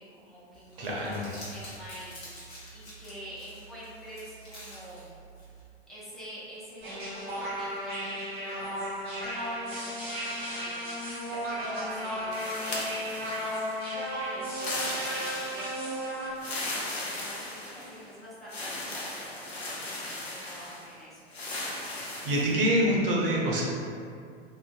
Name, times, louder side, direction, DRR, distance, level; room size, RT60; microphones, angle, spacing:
voice 1, 0.0-2.3 2.7-5.1 5.9-10.9 11.3-13.5 14.3-16.0 16.6-21.2, equal, ahead, -10 dB, 0.5 m, -46 dB
Crumpling crinkling, 0.5-5.6, right 1 dB, 30° left, 0.9 m, -47 dB
voice 2, 0.8-1.2 22.1-23.6, equal, 60° right, -3 dB, 0.7 m, -26 dB
sound 1, 6.8-16.3, equal, 30° right, 1.0 m, -34 dB
sound 2, 12.3-13.8 14.5-15.8 16.3-18.0 18.5-20.9 21.3-22.6, left 2 dB, 75° left, 0.6 m, -37 dB
2.5 x 2.1 x 2.4 m, 2.3 s
figure-of-eight pair, 90°, 32 cm